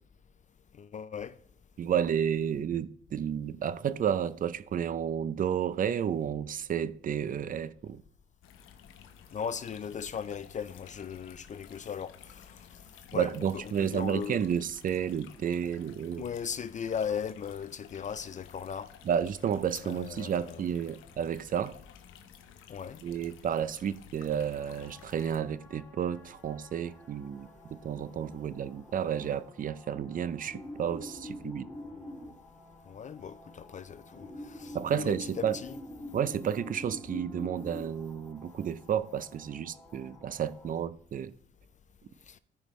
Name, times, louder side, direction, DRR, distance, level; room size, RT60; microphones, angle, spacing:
voice 1, 0.7-1.3 9.3-12.7 13.1-14.4 16.2-18.9 19.8-20.7 22.7-23.0 32.9-35.7 42.3-42.4, left 7 dB, 40° left, 0.4 m, -38 dB
voice 2, 1.8-8.0 13.1-16.2 19.0-21.8 23.0-31.7 34.7-35.6 36.1-41.3, right 8 dB, 45° right, 0.5 m, -31 dB
sound 1, 8.4-25.4, left 8 dB, 85° left, 0.9 m, -54 dB
sound 2, 24.6-40.8, left 1 dB, 10° left, 2.3 m, -47 dB
14.0 x 5.2 x 3.1 m
cardioid pair, 90°, 20 cm